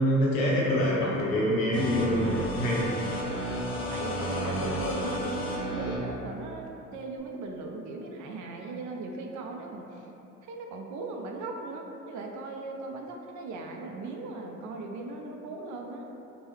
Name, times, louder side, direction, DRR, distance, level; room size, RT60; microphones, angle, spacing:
voice 1, 0.0-3.0, equal, 80° left, -5 dB, 0.8 m, -25 dB
sound 1, 1.7-6.0, equal, 40° left, 0.6 m, -32 dB
voice 2, 3.9-10.0 10.5-16.1, right 3 dB, 50° right, 2 dB, 0.5 m, -38 dB
2.9 x 2.2 x 3.2 m, 2.8 s
hypercardioid pair, 55°, 40 cm